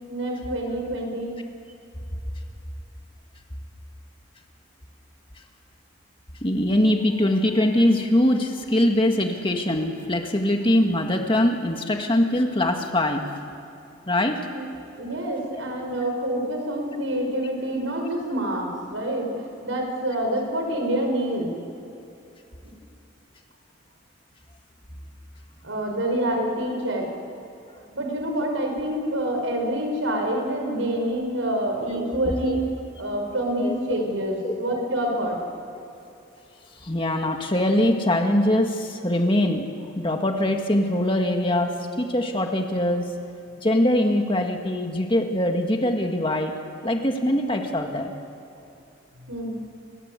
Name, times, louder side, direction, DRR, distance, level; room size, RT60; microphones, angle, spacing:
voice 1, 0.1-1.4 14.5-14.6 15.0-21.5 25.6-27.1 27.9-32.6 33.0-35.4 49.3-49.5, right 1 dB, 85° right, 2 dB, 5.9 m, -27 dB
voice 2, 6.4-13.3 14.1-14.5 25.7-25.8 31.9-32.6 33.6-33.8 34.4-34.6 36.6-43.1 43.6-48.1, left 1 dB, 25° left, 3 dB, 2.0 m, -23 dB
29.5 x 23.0 x 8.4 m, 2.8 s
head